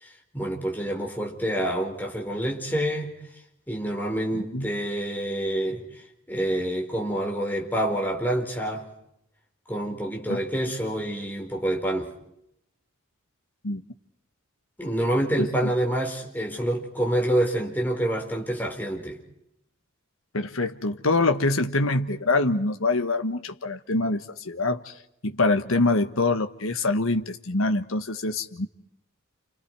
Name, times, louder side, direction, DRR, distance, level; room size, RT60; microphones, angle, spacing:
voice 1, 0.0-3.1 3.7-6.0 6.3-8.9 9.7-12.1 14.8-19.2, right 1 dB, 10° left, 4.6 m, -27 dB
voice 2, 15.4-15.7 20.3-24.9 25.2-28.7, left 2 dB, 75° left, 1.4 m, -25 dB
29.5 x 29.5 x 4.8 m
head